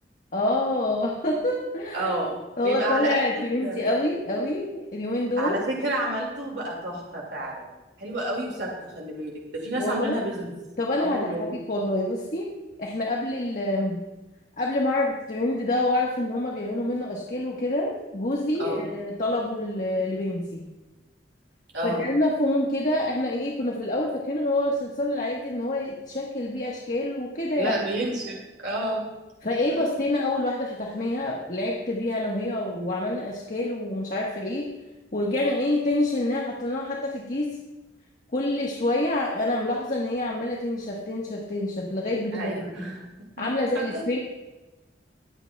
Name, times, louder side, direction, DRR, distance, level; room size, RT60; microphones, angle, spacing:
voice 1, 0.3-2.1 2.6-5.6 9.8-10.2 10.8-12.5 12.8-14.0 14.6-20.6 21.8-27.7 29.4-34.7 35.1-37.5 38.3-42.5 43.4-44.2, left 1 dB, 45° left, -2 dB, 1.4 m, -27 dB
voice 2, 1.9-2.4 2.6-4.0 5.4-7.7 8.0-10.5 11.0-11.5 18.6-18.9 21.7-22.0 27.6-29.1 42.3-43.0 43.4-43.5 43.7-44.0, right 1 dB, 85° right, -2 dB, 2.3 m, -30 dB
22.0 x 8.9 x 2.3 m, 1.1 s
head